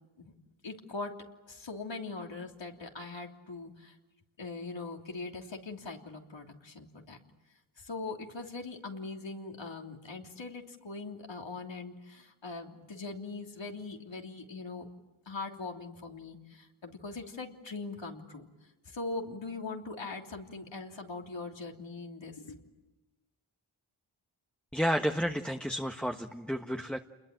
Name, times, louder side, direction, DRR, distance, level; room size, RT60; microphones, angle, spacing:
voice 1, 0.6-4.0 4.4-7.2 7.8-14.9 15.2-18.5 18.8-22.6, left 3 dB, 65° left, 2 dB, 3.3 m, -41 dB
voice 2, 24.7-27.0, equal, ahead, 4 dB, 1.4 m, -31 dB
28.5 x 21.5 x 9.1 m, 1.1 s
cardioid pair, 40°, 48 cm